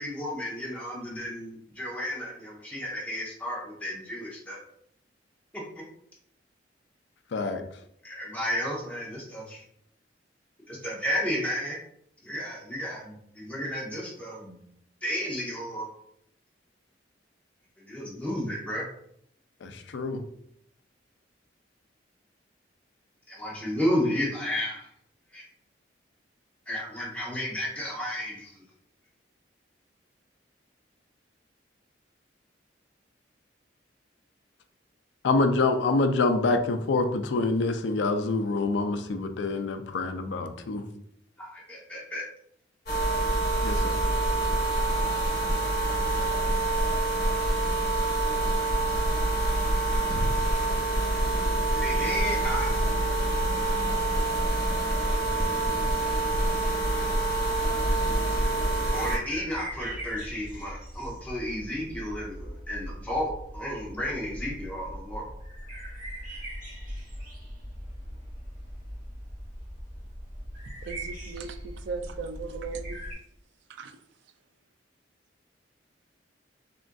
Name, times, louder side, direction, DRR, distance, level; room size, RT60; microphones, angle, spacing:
voice 1, 0.0-4.6 8.0-9.6 10.7-11.8 12.2-14.5 15.0-15.9 17.8-18.9 23.3-24.9 25.3-25.4 26.7-28.5 41.4-42.3 51.8-52.7 58.9-65.2, equal, 10° left, -4 dB, 0.7 m, -32 dB
voice 2, 7.3-7.6 19.6-20.2 35.2-40.8 43.6-44.0, left 3 dB, 70° left, 7 dB, 0.4 m, -26 dB
sound 1, 42.9-59.2, right 2 dB, 55° left, 0.9 m, -26 dB
sound 2, 58.2-73.1, equal, 45° right, 1.5 m, -40 dB
voice 3, 70.8-73.0 73.7-74.0, right 4 dB, 70° right, 7 dB, 0.3 m, -37 dB
3.5 x 2.5 x 2.2 m, 0.71 s
head